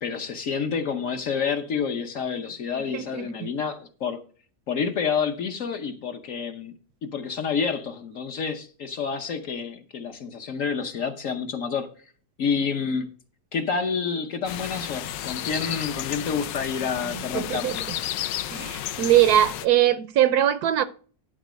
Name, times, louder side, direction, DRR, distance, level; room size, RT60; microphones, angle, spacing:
voice 1, 0.0-4.2 4.7-6.7 7.0-11.9 12.4-13.1 13.5-18.0, left 6 dB, 55° left, 1.1 m, -28 dB
voice 2, 2.9-3.3 17.3-17.8 18.5-20.8, right 12 dB, 70° right, 1.0 m, -21 dB
sound 1, 14.5-19.7, left 12 dB, 90° left, 1.3 m, -32 dB
11.5 x 4.1 x 6.2 m
omnidirectional pair, 1.9 m